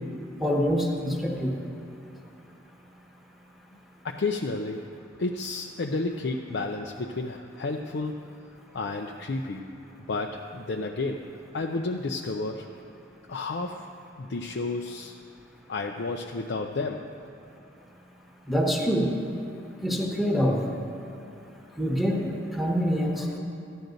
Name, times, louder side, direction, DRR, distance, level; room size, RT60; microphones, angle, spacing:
voice 1, 0.4-1.6 18.5-19.1 19.8-20.6 21.8-22.3 22.5-23.4, equal, ahead, -1 dB, 1.2 m, -25 dB
voice 2, 4.0-4.9 5.2-8.2 8.7-9.7 10.1-11.3 11.5-12.9 13.3-13.9 14.2-15.1 15.7-17.1, left 3 dB, 60° left, 2 dB, 0.5 m, -31 dB
14.0 x 10.5 x 3.9 m, 2.9 s
head